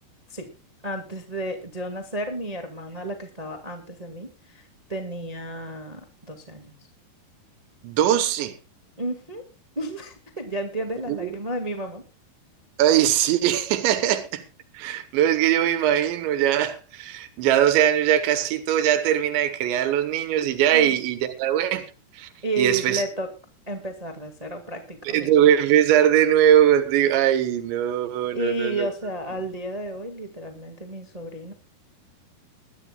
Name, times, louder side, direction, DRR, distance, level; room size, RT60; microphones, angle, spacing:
voice 1, 0.8-6.7 9.0-9.4 9.7-12.0 20.7-20.9 22.4-23.3 23.7-25.3 28.3-31.5, right 2 dB, 60° right, 0.4 m, -32 dB
voice 2, 7.8-8.6 11.1-11.4 12.8-14.4 14.7-21.9 22.1-22.3 22.6-23.0 25.1-28.9, right 11 dB, 90° right, 3.6 m, -21 dB
21.5 x 12.5 x 2.4 m
omnidirectional pair, 5.0 m